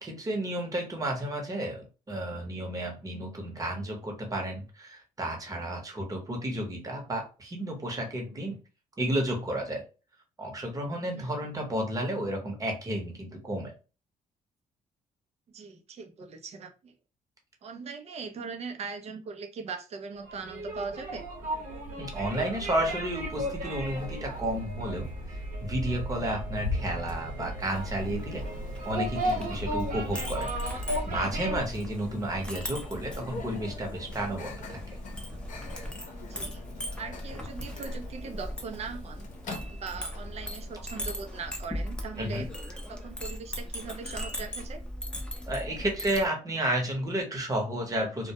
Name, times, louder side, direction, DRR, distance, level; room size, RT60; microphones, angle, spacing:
voice 1, 0.0-8.6 9.0-9.8 10.4-13.7 22.0-25.1 25.6-28.4 28.8-34.8 42.2-42.5 45.5-48.3, right 1 dB, 25° right, 0.9 m, -32 dB
voice 2, 15.5-16.9 17.6-21.3 31.1-31.3 36.2-36.6 37.0-39.3 39.7-42.5 42.9-44.8, right 5 dB, 50° right, 0.5 m, -40 dB
sound 1, 20.2-31.6, right 1 dB, 75° right, 0.9 m, -35 dB
Microwave oven, 26.5-41.6, left 3 dB, 60° left, 0.7 m, -43 dB
Chink clink, 27.7-46.3, equal, 5° left, 0.6 m, -39 dB
2.2 x 2.1 x 2.8 m
cardioid pair, 105°, 14 cm